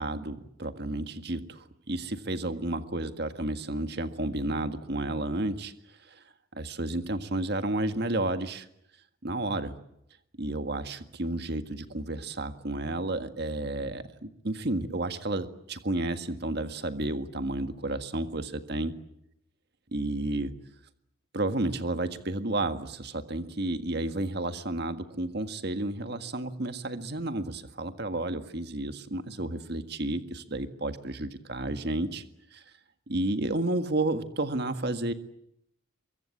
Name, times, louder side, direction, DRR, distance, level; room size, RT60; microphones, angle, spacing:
voice 1, 0.0-6.2 6.5-8.7 9.2-9.8 10.4-19.0 19.9-20.5 21.3-32.2 32.5-32.6 33.1-35.1, right 2 dB, 50° right, 8 dB, 1.7 m, -31 dB
24.0 x 23.5 x 8.7 m, 0.77 s
head